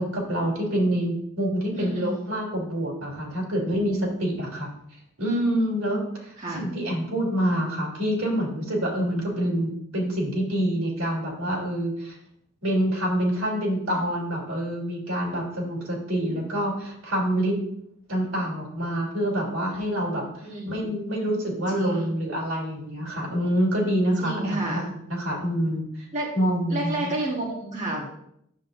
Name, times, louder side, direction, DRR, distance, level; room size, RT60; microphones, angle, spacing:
voice 1, 0.0-4.7 5.2-12.2 12.6-17.6 18.1-20.2 20.6-26.1 26.3-27.1, equal, 90° right, -2 dB, 3.2 m, -26 dB
voice 2, 1.7-2.1 6.4-6.6 20.4-20.9 21.7-22.1 24.2-24.9 26.1-26.3 26.7-28.0, right 1 dB, 35° right, -3 dB, 1.4 m, -30 dB
10.0 x 7.5 x 2.6 m, 0.73 s
head